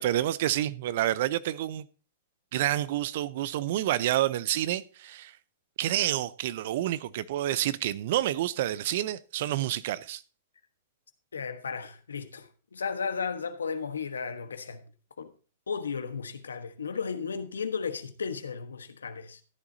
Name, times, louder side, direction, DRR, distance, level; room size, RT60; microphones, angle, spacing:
voice 1, 0.0-1.9 2.5-5.4 5.8-10.2, right 13 dB, 60° right, 0.7 m, -28 dB
voice 2, 11.3-14.8 15.2-15.3 15.7-19.4, left 5 dB, 85° left, 1.2 m, -34 dB
14.0 x 9.7 x 2.7 m
hypercardioid pair, 115°, 0 cm